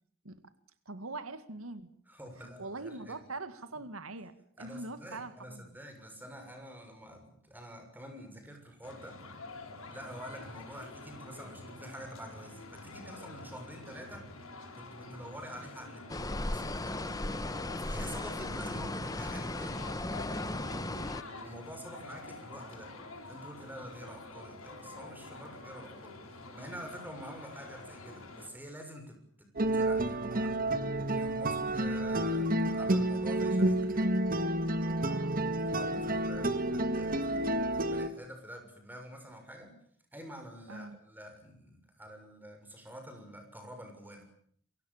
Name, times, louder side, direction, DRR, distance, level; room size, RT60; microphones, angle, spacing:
voice 1, 0.9-1.9 2.6-4.3 4.6-5.7 18.4-18.7 35.0-35.4 40.7-41.0, right 3 dB, 90° right, 11 dB, 2.0 m, -43 dB
voice 2, 2.1-3.2 4.6-9.1 9.9-14.3 14.7-16.0 16.3-17.1 17.8-19.8 20.3-22.9 23.3-26.2 26.5-29.2 29.6-30.6 31.1-34.1 35.6-39.7 40.1-44.3, equal, 10° right, 4 dB, 6.7 m, -47 dB
sound 1, 8.8-28.5, left 2 dB, 85° left, 7.5 m, -48 dB
sound 2, 16.1-21.2, left 2 dB, 20° left, 1.1 m, -36 dB
sound 3, 29.6-38.1, right 1 dB, 45° right, 2.0 m, -30 dB
28.0 x 24.0 x 7.3 m, 0.62 s
head